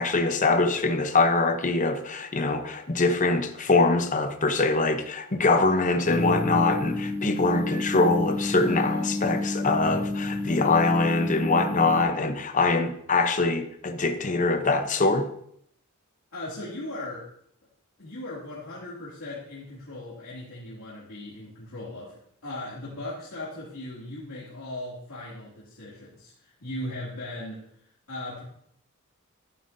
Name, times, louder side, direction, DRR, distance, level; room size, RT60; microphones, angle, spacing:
voice 1, 0.0-15.3, left 3 dB, 35° left, 0.7 m, -23 dB
sound 1, 6.0-12.0, left 2 dB, 15° right, 2.3 m, -30 dB
voice 2, 16.3-17.3 18.0-27.6 28.1-28.4, left 1 dB, 85° left, 2.5 m, -38 dB
11.0 x 9.3 x 2.7 m
head